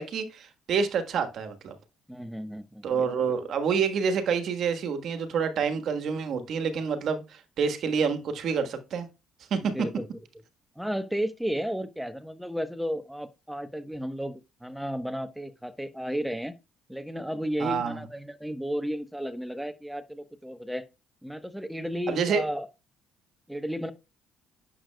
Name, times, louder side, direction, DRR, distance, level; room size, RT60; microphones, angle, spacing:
voice 1, 0.0-1.7 2.8-9.1 9.5-9.6 17.6-18.0 22.1-22.5, right 6 dB, 60° right, 1.4 m, -28 dB
voice 2, 2.1-3.4 9.6-10.1 10.8-16.5 16.9-20.8 21.2-22.7 23.5-23.9, equal, ahead, 1.0 m, -33 dB
9.9 x 6.7 x 2.3 m
supercardioid pair, 75°, 0 cm